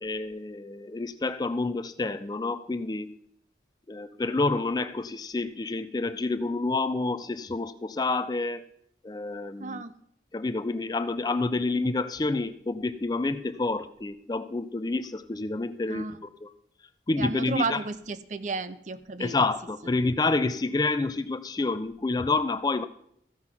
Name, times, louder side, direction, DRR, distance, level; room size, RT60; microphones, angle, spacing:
voice 1, 0.0-3.1 3.9-8.6 9.0-9.8 10.3-16.5 17.1-17.8 19.2-22.9, left 3 dB, 20° left, 13 dB, 0.4 m, -28 dB
voice 2, 9.6-9.9 15.9-16.2 17.2-19.5 19.8-19.9, right 4 dB, 40° right, 13 dB, 0.6 m, -33 dB
14.5 x 5.8 x 5.9 m, 0.71 s
head